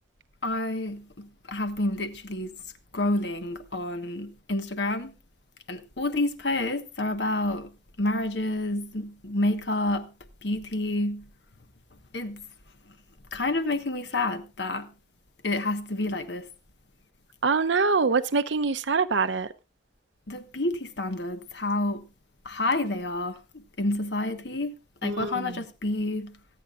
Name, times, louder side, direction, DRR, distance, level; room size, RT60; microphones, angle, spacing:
voice 1, 0.4-2.6 2.9-5.1 5.7-10.1 10.4-11.3 12.1-12.5 12.9-13.0 13.3-14.9 15.4-16.5 20.3-22.1 22.4-23.4 23.8-24.7 25.0-26.4, left 2 dB, 65° left, 1.3 m, -29 dB
voice 2, 17.4-19.5 25.0-25.6, right 4 dB, 80° right, 0.7 m, -24 dB
25.0 x 8.8 x 2.4 m
head